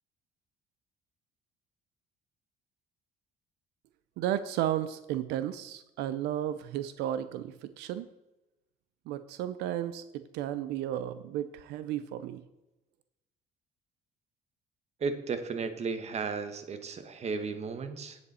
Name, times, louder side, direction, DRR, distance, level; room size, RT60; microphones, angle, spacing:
voice 1, 4.2-8.1 9.1-12.4, right 11 dB, 85° right, 13 dB, 0.5 m, -33 dB
voice 2, 15.0-18.2, right 5 dB, 40° right, 9 dB, 1.1 m, -34 dB
9.9 x 8.1 x 4.1 m, 0.99 s
cardioid pair, 110°, 17 cm